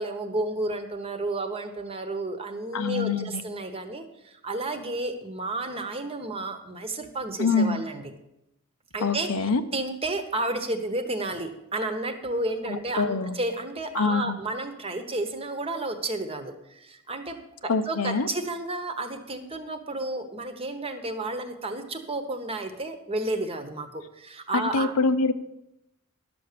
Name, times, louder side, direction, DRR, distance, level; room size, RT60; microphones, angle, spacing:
voice 1, 0.0-8.1 8.9-24.9, right 2 dB, 25° right, 7 dB, 1.0 m, -32 dB
voice 2, 2.7-3.4 7.4-7.8 9.0-9.6 12.7-13.4 13.9-14.4 17.7-18.3 24.5-25.3, left 4 dB, 80° left, 10 dB, 0.7 m, -25 dB
11.5 x 7.0 x 6.7 m, 0.85 s
head